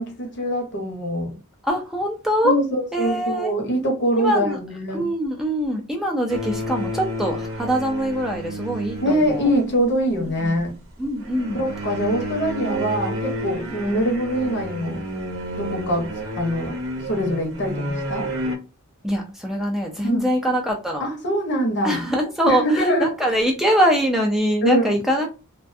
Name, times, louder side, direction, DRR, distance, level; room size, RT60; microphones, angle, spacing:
voice 1, 0.0-1.3 2.4-5.1 9.0-10.7 11.6-15.0 15.6-16.1 16.4-16.8 17.1-18.3 20.0-20.2 21.0-22.0 22.5-23.4 24.6-25.0, equal, 55° left, 0.8 m, -23 dB
voice 2, 1.6-2.6 2.9-3.5 4.2-4.6 4.9-9.5 10.4-10.6 11.0-11.7 12.5-12.9 13.8-14.0 19.0-21.1 21.8-25.3, equal, ahead, 0.3 m, -23 dB
sound 1, 6.3-9.9 11.2-18.6, right 1 dB, 65° right, 0.6 m, -30 dB
2.4 x 2.2 x 2.5 m
head